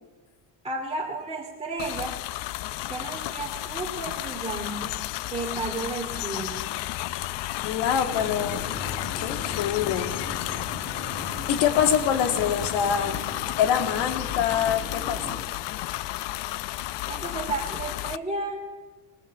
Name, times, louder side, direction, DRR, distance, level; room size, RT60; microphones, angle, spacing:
voice 1, 0.6-2.2 2.9-5.0 5.3-6.7 17.1-18.6, right 3 dB, 15° right, -2 dB, 2.5 m, -33 dB
sound 1, 1.8-18.2, left 16 dB, 70° left, 0.7 m, -32 dB
voice 2, 7.6-8.7 9.2-10.2 11.5-13.2 13.6-15.4, left 8 dB, 85° left, 7 dB, 2.2 m, -25 dB
sound 2, 8.1-15.5, left 2 dB, 30° left, 3.6 m, -39 dB
20.5 x 19.5 x 7.5 m, 1.2 s
cardioid pair, 125°, 44 cm